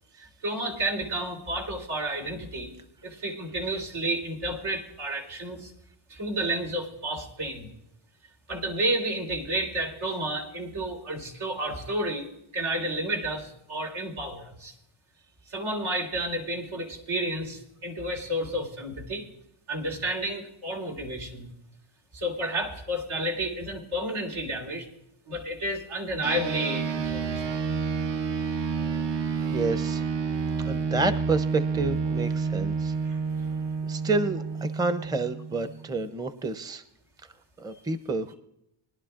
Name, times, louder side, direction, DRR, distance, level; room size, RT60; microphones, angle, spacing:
voice 1, 0.2-2.7 3.0-5.7 6.1-7.7 8.5-12.3 12.5-14.7 15.5-19.3 19.7-21.5 22.1-24.9 25.3-27.4 33.0-33.2, right 1 dB, 80° right, 0 dB, 3.5 m, -31 dB
sound 1, 26.2-36.0, right 5 dB, 55° right, 0.8 m, -29 dB
voice 2, 29.5-30.0 30.7-32.9 33.8-36.8 37.6-38.3, right 3 dB, 10° right, 11 dB, 0.6 m, -29 dB
23.0 x 11.5 x 2.5 m, 0.79 s
cardioid pair, 100°, 50 cm